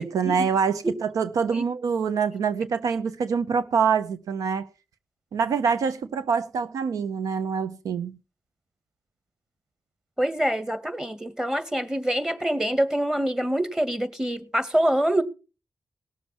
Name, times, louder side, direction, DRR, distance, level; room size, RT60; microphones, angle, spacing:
voice 1, 0.0-4.7 5.3-8.2, right 6 dB, 90° right, 0.8 m, -25 dB
voice 2, 10.2-15.2, right 1 dB, 10° right, 2.2 m, -25 dB
19.0 x 7.2 x 4.4 m
cardioid pair, 45°, 6 cm